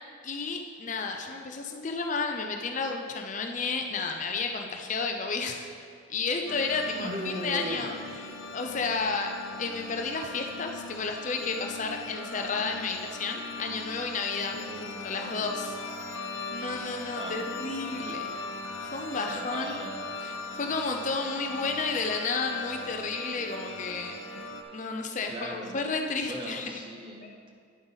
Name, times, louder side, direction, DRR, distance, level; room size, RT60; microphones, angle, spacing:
voice 1, 0.2-5.7 6.1-7.9 8.5-9.3 9.6-14.6 15.0-15.7 16.1-18.4 18.8-19.8 20.2-24.4 24.7-26.7 27.2-27.3, left 4 dB, 40° left, 3 dB, 0.5 m, -32 dB
sound 1, 6.5-24.6, left 2 dB, 90° left, 1.0 m, -39 dB
voice 2, 7.0-8.0 8.3-8.4 14.5-15.4 17.2-17.5 19.1-20.0 25.2-25.8 26.3-27.5, right 1 dB, 25° right, 1 dB, 0.8 m, -39 dB
9.4 x 7.6 x 4.0 m, 2.2 s
head